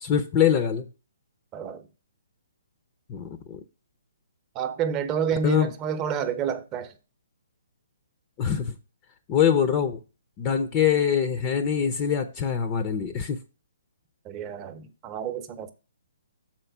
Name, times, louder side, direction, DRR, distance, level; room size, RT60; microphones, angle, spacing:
voice 1, 0.0-0.8 3.1-3.6 5.4-5.7 8.4-8.7 9.3-10.0 10.4-13.4, left 8 dB, 30° left, 0.7 m, -24 dB
voice 2, 1.5-1.9 4.5-6.9 14.2-15.7, right 6 dB, 25° right, 0.8 m, -29 dB
6.5 x 4.4 x 5.9 m
hypercardioid pair, 140°, 0 cm